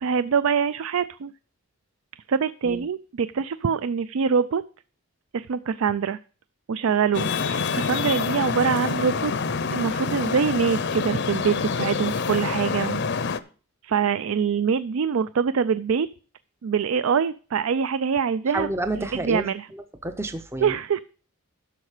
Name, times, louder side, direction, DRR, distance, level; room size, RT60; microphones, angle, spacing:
voice 1, 0.0-1.3 2.3-4.6 5.3-6.2 6.7-9.3 9.7-13.1 13.8-16.1 16.6-18.7 19.0-19.7 20.6-21.0, right 6 dB, 65° right, 15 dB, 0.4 m, -24 dB
Traffic noise roadway noise, 7.1-13.4, left 5 dB, 50° left, 0.6 m, -27 dB
voice 2, 18.5-19.5 20.0-20.7, right 1 dB, 10° right, 9 dB, 0.6 m, -29 dB
11.0 x 6.6 x 4.9 m, 0.39 s
head